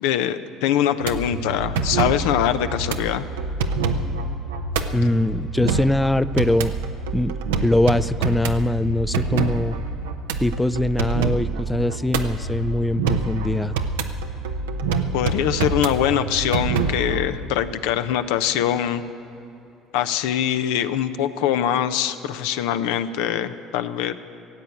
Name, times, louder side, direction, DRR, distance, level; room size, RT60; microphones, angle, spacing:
voice 1, 0.0-3.3 15.1-19.0 19.9-24.1, left 10 dB, 75° left, 10 dB, 0.6 m, -23 dB
sound 1, 1.0-17.3, right 4 dB, 85° right, 0.7 m, -26 dB
voice 2, 4.9-6.7 7.1-7.3 7.6-9.8 10.4-13.8, left 1 dB, 10° left, 15 dB, 0.4 m, -22 dB
16.0 x 7.9 x 8.4 m, 3.0 s
hypercardioid pair, 70°, 0 cm